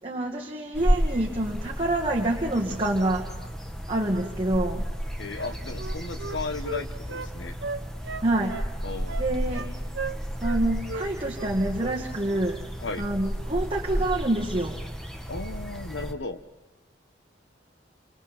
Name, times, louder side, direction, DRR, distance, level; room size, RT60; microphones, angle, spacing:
voice 1, 0.0-3.3 3.9-4.8 8.2-8.6 9.2-9.7 10.4-12.6 13.0-14.8, right 1 dB, 30° right, -2 dB, 2.1 m, -27 dB
sound 1, 0.7-16.1, equal, 5° left, 1.4 m, -32 dB
voice 2, 5.2-7.5 8.8-9.2 12.8-13.0 15.3-16.4, left 3 dB, 85° left, 8 dB, 1.3 m, -35 dB
Wind instrument woodwind instrument, 5.3-7.3 7.6-8.7 9.1-9.7 9.9-10.6 10.9-11.1 11.4-12.0 12.3-12.5, right 4 dB, 75° right, 1.0 m, -36 dB
29.0 x 26.0 x 4.4 m, 1.1 s
head